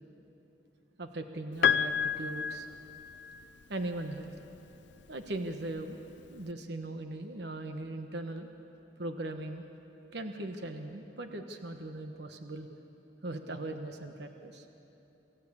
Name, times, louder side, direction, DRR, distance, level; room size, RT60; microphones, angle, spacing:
voice 1, 1.0-2.7 3.7-4.3 5.1-6.0 6.3-8.5 9.0-9.7 10.1-12.7 13.2-14.7, right 2 dB, 70° right, 6 dB, 1.2 m, -39 dB
Piano, 1.6-3.6 4.9-5.0, left 7 dB, 75° left, 0.5 m, -30 dB
27.5 x 14.5 x 8.6 m, 3.0 s
head